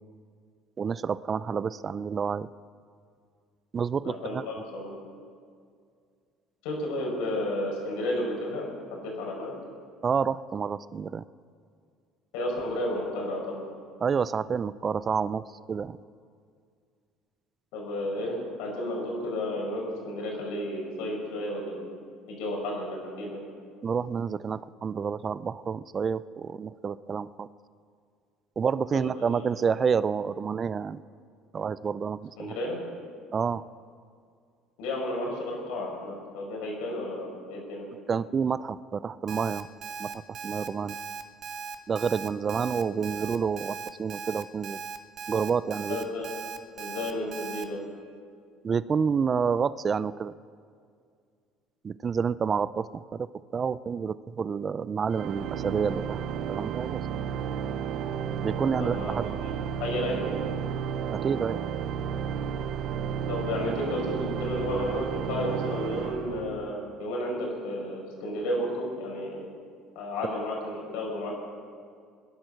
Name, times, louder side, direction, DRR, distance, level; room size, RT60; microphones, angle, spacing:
voice 1, 0.8-2.5 3.7-4.4 10.0-11.2 14.0-16.0 23.8-27.5 28.6-31.0 31.5-32.6 33.3-33.6 38.1-39.7 40.0-41.0 41.9-44.8 45.3-46.1 48.6-50.3 51.8-56.2 56.5-57.0 58.4-59.3 61.1-61.6, right 6 dB, 30° right, 16 dB, 0.4 m, -29 dB
voice 2, 4.0-4.9 6.6-9.6 12.3-13.6 17.7-21.8 22.3-23.4 28.9-29.0 32.4-32.8 34.8-37.9 45.9-46.3 46.8-47.8 58.8-59.1 59.4-59.5 59.8-60.4 63.2-69.4 69.9-71.3, left 1 dB, 85° left, -1 dB, 5.0 m, -32 dB
Alarm, 39.3-47.6, right 5 dB, 45° right, 1.0 m, -38 dB
Organ, 55.1-66.9, right 8 dB, 65° right, 0.7 m, -32 dB
17.5 x 10.5 x 6.4 m, 2.2 s
cardioid pair, 115°, 0 cm